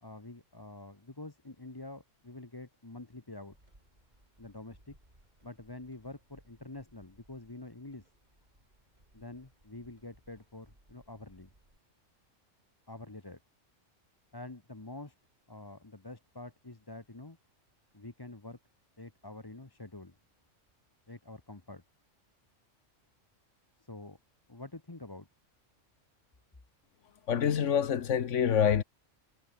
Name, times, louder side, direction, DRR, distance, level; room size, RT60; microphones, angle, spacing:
voice 1, 0.0-3.6 4.4-4.9 5.4-8.1 9.1-11.5 12.9-13.4 14.3-15.1 15.5-17.4 17.9-18.6 19.0-20.1 21.1-21.8 23.8-24.2 24.5-25.3, left 2 dB, 20° left, 1.3 m, -47 dB
sound 1, 3.5-11.8, right 1 dB, 35° right, 6.8 m, -64 dB
voice 2, 27.3-28.8, left 8 dB, 70° left, 1.3 m, -26 dB
omnidirectional pair, 1.3 m